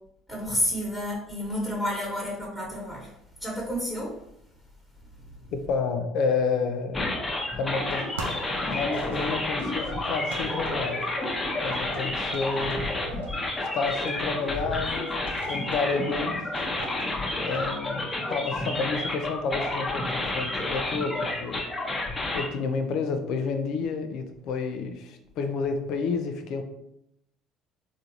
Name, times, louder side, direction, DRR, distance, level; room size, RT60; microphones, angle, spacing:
voice 1, 0.3-3.1 3.4-4.2, equal, 5° left, -3 dB, 1.2 m, -30 dB
voice 2, 5.5-7.1 7.5-8.1 8.6-11.0 11.6-12.8 13.6-16.4 17.4-21.6 22.3-26.6, left 4 dB, 60° left, 7 dB, 0.4 m, -30 dB
sound 1, 6.9-22.5, left 2 dB, 25° left, 0.8 m, -30 dB
sound 2, 7.7-17.8, right 4 dB, 85° right, 0.4 m, -42 dB
3.6 x 2.5 x 2.9 m, 0.80 s
hypercardioid pair, 65°, 0 cm